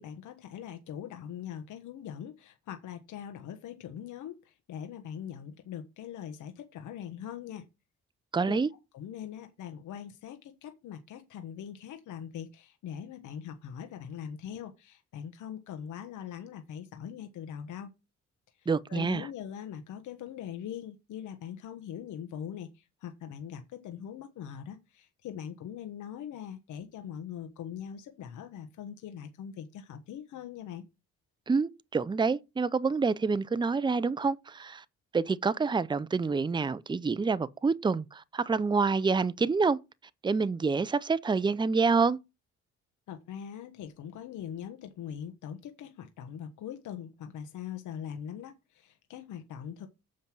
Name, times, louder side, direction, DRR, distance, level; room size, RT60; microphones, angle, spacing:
voice 1, 0.0-7.7 8.4-8.6 8.9-17.9 18.6-30.8 43.1-49.9, left 9 dB, 80° left, 1.2 m, -42 dB
voice 2, 8.3-8.7 18.7-19.3 31.5-34.8 35.1-39.8 40.2-42.2, right 4 dB, 15° right, 0.5 m, -27 dB
7.4 x 5.4 x 6.1 m
cardioid pair, 90°, 30 cm